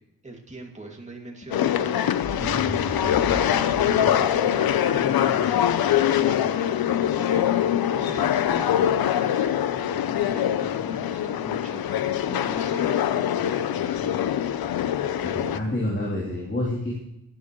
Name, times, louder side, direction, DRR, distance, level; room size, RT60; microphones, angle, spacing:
voice 1, 0.2-14.3, right 2 dB, 20° right, 0 dB, 2.3 m, -42 dB
sound 1, 1.5-15.6, left 10 dB, 85° left, 0.7 m, -23 dB
sound 2, 2.2-8.5, left 2 dB, 70° left, 5.5 m, -36 dB
voice 2, 15.2-16.9, left 1 dB, 30° left, -5 dB, 3.2 m, -28 dB
17.5 x 11.0 x 3.1 m, 0.82 s
wide cardioid pair, 125°, 35 cm